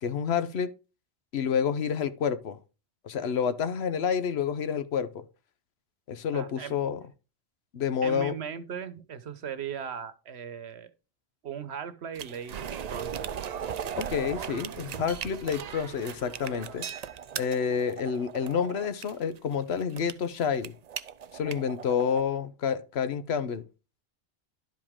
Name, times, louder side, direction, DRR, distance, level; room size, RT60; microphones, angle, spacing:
voice 1, 0.0-0.7 1.3-2.6 3.0-5.2 6.1-7.0 7.7-8.4 14.0-16.9 17.4-20.7 21.3-23.6, left 7 dB, 85° left, 1.1 m, -29 dB
voice 2, 6.3-6.7 8.0-10.9 11.4-13.3 15.0-15.1 16.4-16.8, right 7 dB, 85° right, 1.2 m, -38 dB
sound 1, 12.1-22.2, right 8 dB, 50° right, 0.5 m, -38 dB
11.5 x 5.0 x 3.6 m
omnidirectional pair, 1.1 m